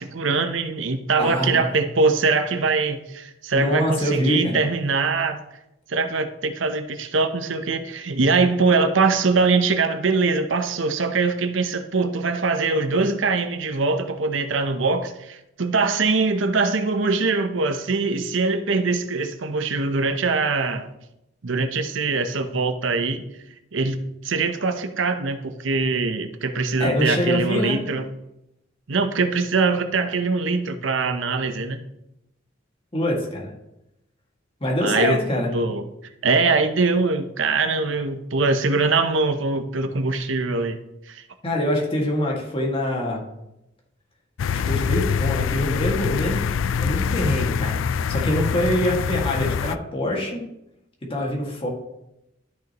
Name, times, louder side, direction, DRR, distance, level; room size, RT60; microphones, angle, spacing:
voice 1, 0.0-5.4 5.9-20.9 21.4-23.2 23.7-28.1 28.9-31.8 34.8-35.2 35.5-35.8 36.2-40.8 41.1-41.2, right 4 dB, 80° right, 9 dB, 0.7 m, -22 dB
voice 2, 1.2-1.6 3.5-4.6 26.8-27.8 32.9-33.5 34.6-35.5 41.4-43.2 44.5-46.5 46.8-50.5 51.0-51.7, left 1 dB, 30° left, -1 dB, 1.9 m, -24 dB
sound 1, 44.4-49.7, left 6 dB, 90° left, 0.4 m, -24 dB
12.5 x 6.2 x 3.0 m, 0.87 s
head